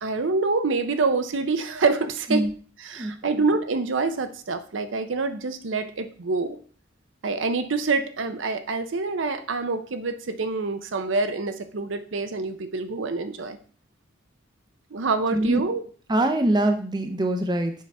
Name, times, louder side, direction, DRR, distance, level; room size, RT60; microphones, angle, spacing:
voice 1, 0.0-2.5 2.8-6.6 7.2-13.6 14.9-15.8, right 3 dB, 80° right, 9 dB, 0.6 m, -26 dB
voice 2, 15.3-15.6 16.1-17.7, right 1 dB, 20° right, 6 dB, 0.6 m, -23 dB
7.4 x 5.5 x 3.4 m, 0.43 s
head